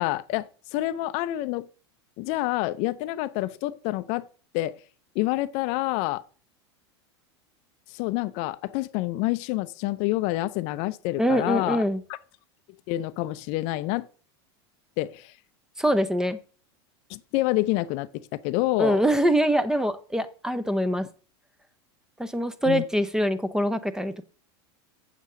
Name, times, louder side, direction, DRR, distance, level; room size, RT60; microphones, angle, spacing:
voice 1, 0.0-1.7 2.2-4.3 4.5-4.8 5.2-6.2 7.9-11.8 12.1-12.2 12.9-14.1 15.0-15.3 17.1-19.0 22.7-22.8, left 17 dB, 55° left, 0.5 m, -27 dB
voice 2, 11.2-12.0 15.8-16.4 18.8-21.1 22.2-24.2, equal, 5° right, 0.6 m, -24 dB
8.3 x 7.3 x 3.8 m
hypercardioid pair, 110°, 14 cm